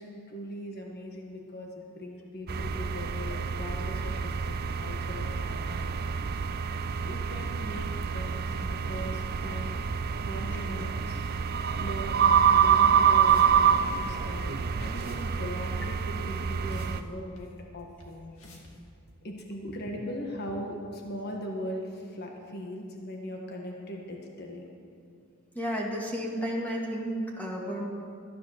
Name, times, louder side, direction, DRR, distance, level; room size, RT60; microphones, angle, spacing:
voice 1, 0.0-5.9 7.0-9.7 10.2-11.2 11.7-12.2 12.5-18.3 19.2-24.6, equal, 50° left, 1 dB, 1.4 m, -39 dB
sound 1, 2.5-17.0, right 7 dB, 50° right, 0.4 m, -27 dB
sound 2, 12.4-12.5 13.1-13.6 13.9-14.0 14.6-14.7 14.9-15.3 15.6-17.0 17.4-17.5 18.0-18.1 18.4-18.7, left 1 dB, 80° left, 2.1 m, -49 dB
voice 2, 25.5-27.9, equal, 10° left, -2 dB, 2.0 m, -32 dB
13.0 x 10.0 x 6.6 m, 2.4 s
head